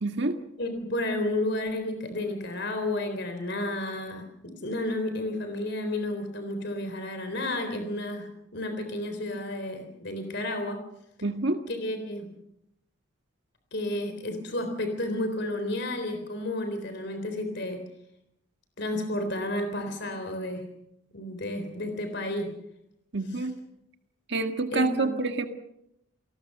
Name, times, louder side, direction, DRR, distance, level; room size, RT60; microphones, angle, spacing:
voice 1, 0.0-0.4 11.2-11.6 23.1-23.6 24.3-25.5, right 2 dB, 55° right, 6 dB, 1.7 m, -27 dB
voice 2, 0.6-10.8 11.7-12.3 13.7-17.8 18.8-20.6 21.1-22.5 24.7-25.1, left 1 dB, 55° left, 7 dB, 3.8 m, -31 dB
29.5 x 19.5 x 6.7 m, 0.80 s
head